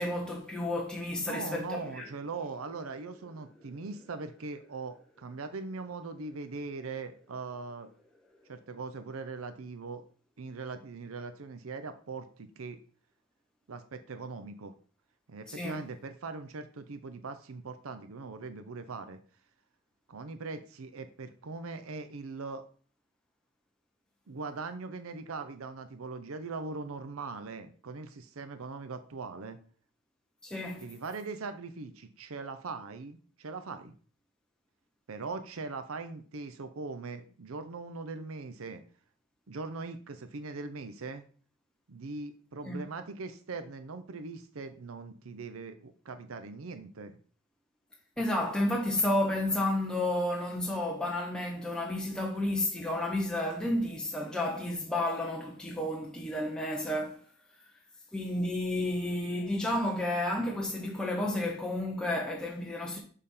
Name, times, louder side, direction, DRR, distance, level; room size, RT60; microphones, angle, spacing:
voice 1, 0.0-2.1 15.5-15.8 30.4-30.8 42.7-42.8 48.2-57.2 58.1-63.0, left 1 dB, 5° left, 0.8 m, -31 dB
voice 2, 1.3-7.9 8.5-10.0 10.4-12.8 13.7-14.7 15.3-19.2 20.1-22.6 24.3-29.6 30.8-33.9 35.1-38.8 39.5-41.2 41.9-47.2, right 4 dB, 85° right, 0.6 m, -40 dB
6.6 x 3.6 x 5.4 m
head